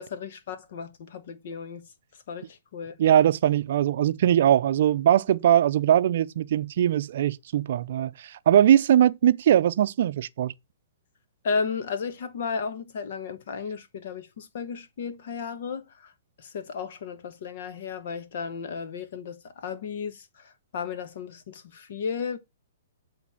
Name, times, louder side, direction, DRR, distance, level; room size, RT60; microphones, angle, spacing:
voice 1, 0.0-1.9 2.3-3.0 11.4-16.1 16.4-22.4, left 5 dB, 60° left, 1.3 m, -34 dB
voice 2, 3.0-10.5, right 10 dB, 60° right, 0.5 m, -21 dB
8.2 x 3.4 x 5.7 m
hypercardioid pair, 140°, 0 cm